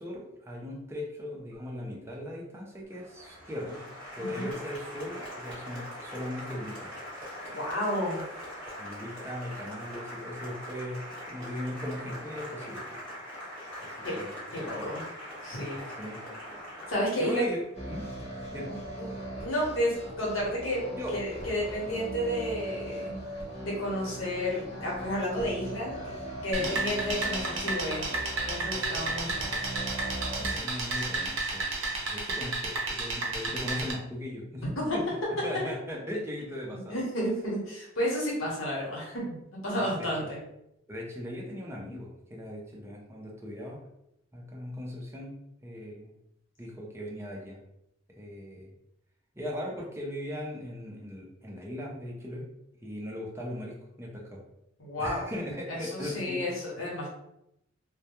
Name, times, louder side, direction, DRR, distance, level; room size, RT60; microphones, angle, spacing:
voice 1, 0.0-3.8 4.2-6.9 8.8-12.9 13.8-14.3 14.6-14.9 16.0-16.2 17.2-18.1 18.5-18.7 21.0-21.2 26.6-26.8 30.4-31.7 32.1-34.6 34.9-35.0 35.3-36.9 39.8-40.4 40.9-43.8 44.3-46.1 46.6-47.6 48.2-48.7 49.4-52.5 52.8-54.4 55.0-56.4, left 1 dB, 15° right, -2 dB, 0.5 m, -38 dB
Applause, 2.9-17.7, equal, 5° left, 1.3 m, -42 dB
voice 2, 4.2-4.5 7.5-8.2 14.0-14.2 14.5-15.0 15.4-15.8 16.9-17.4 18.7-19.1 19.3-23.1 23.6-26.2 26.4-28.0 28.4-29.3 34.8-35.0 36.9-39.4 39.6-40.4 54.8-55.3 55.7-57.1, equal, 85° left, -4 dB, 0.9 m, -31 dB
sound 1, 17.7-30.5, right 1 dB, 35° left, 0.7 m, -39 dB
sound 2, 26.5-33.9, right 3 dB, 70° right, 0.5 m, -32 dB
2.2 x 2.2 x 2.8 m, 0.81 s
head